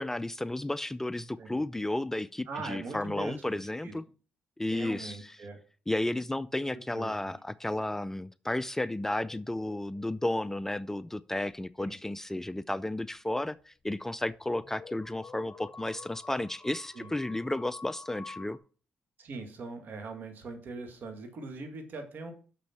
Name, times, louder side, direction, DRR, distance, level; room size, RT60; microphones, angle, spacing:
voice 1, 0.0-4.0 4.6-5.4 5.9-18.6, left 1 dB, 10° left, 0.3 m, -33 dB
voice 2, 2.5-3.6 3.8-4.0 4.7-5.6 6.9-7.3 11.8-12.0 16.9-17.1 19.2-22.3, right 3 dB, 65° right, 2.0 m, -41 dB
sound 1, 9.2-11.6 12.2-12.3 14.0-14.1 14.3-18.6, left 4 dB, 35° left, 1.0 m, -50 dB
6.2 x 6.0 x 5.7 m
cardioid pair, 70°, 3 cm